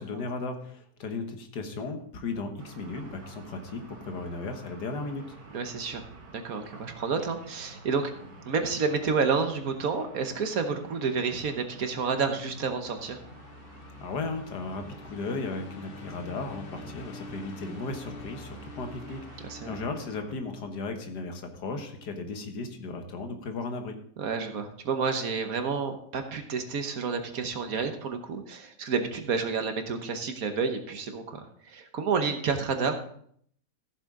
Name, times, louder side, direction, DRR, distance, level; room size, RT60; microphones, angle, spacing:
voice 1, 0.0-5.2 14.0-24.0, left 3 dB, 80° left, 6 dB, 1.8 m, -36 dB
sound 1, 2.6-20.4, right 2 dB, 90° right, 2.3 m, -50 dB
voice 2, 5.5-6.0 6.3-8.1 8.4-13.2 19.4-19.7 24.2-32.9, right 5 dB, 60° right, 7 dB, 1.5 m, -30 dB
sound 2, 12.4-20.7, left 2 dB, 45° left, 0.9 m, -47 dB
14.5 x 7.4 x 3.7 m, 0.63 s
omnidirectional pair, 1.8 m